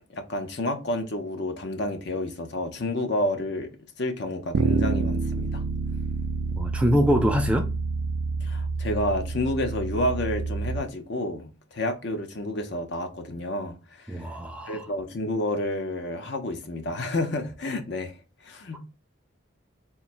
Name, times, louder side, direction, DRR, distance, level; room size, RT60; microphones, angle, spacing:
voice 1, 0.1-3.7 4.0-5.6 8.4-14.3 14.7-18.1 18.4-18.8, left 1 dB, 55° left, 0.6 m, -30 dB
Bass guitar, 4.5-10.8, right 4 dB, 80° right, 0.4 m, -28 dB
voice 2, 6.6-7.7 14.1-14.9 18.7-18.8, equal, 5° right, 0.3 m, -24 dB
3.6 x 2.1 x 4.3 m
head